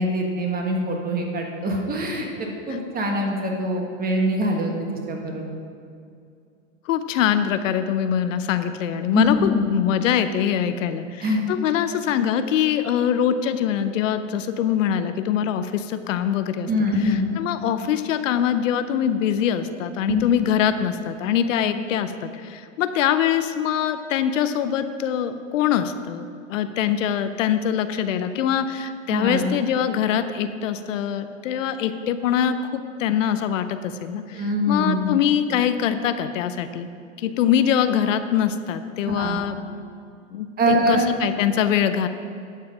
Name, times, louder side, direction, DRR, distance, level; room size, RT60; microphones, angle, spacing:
voice 1, 0.0-4.7 5.1-5.4 9.1-9.7 11.2-11.5 16.7-17.3 20.1-20.2 29.1-29.5 34.3-35.1 39.1-39.4 40.6-41.1, equal, 20° right, 1 dB, 1.4 m, -23 dB
voice 2, 6.9-16.7 17.0-36.9 37.2-39.6 40.3-42.1, left 9 dB, 70° left, 10 dB, 0.7 m, -23 dB
11.5 x 5.7 x 5.1 m, 2.4 s
hypercardioid pair, 120°, 39 cm